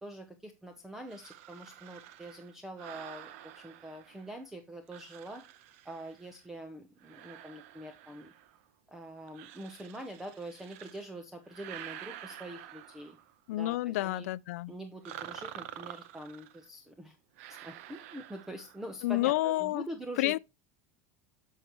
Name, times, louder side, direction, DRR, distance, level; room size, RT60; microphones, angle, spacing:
voice 1, 0.0-5.4 5.8-8.3 8.9-13.2 13.5-14.3 14.7-17.2 17.6-20.4, right 1 dB, 5° right, 0.7 m, -44 dB
sound 1, 1.1-4.4 4.9-6.5 7.0-8.7 9.3-11.1 11.5-13.4 15.0-16.7 17.4-18.9, right 12 dB, 65° right, 0.8 m, -49 dB
voice 2, 13.5-14.7 19.0-19.9 20.2-20.4, left 17 dB, 85° left, 0.4 m, -29 dB
8.7 x 6.4 x 2.9 m
supercardioid pair, 170°, 8 cm